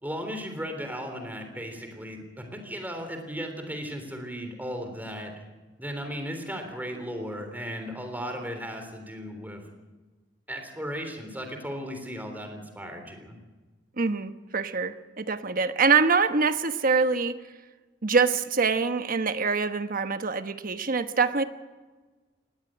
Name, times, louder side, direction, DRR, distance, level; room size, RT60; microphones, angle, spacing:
voice 1, 0.0-5.4 5.8-9.6 10.5-13.4, equal, 10° right, 5 dB, 3.6 m, -36 dB
voice 2, 14.0-17.4 18.0-21.4, right 4 dB, 50° right, 10 dB, 1.1 m, -24 dB
19.5 x 16.5 x 9.1 m, 1.3 s
head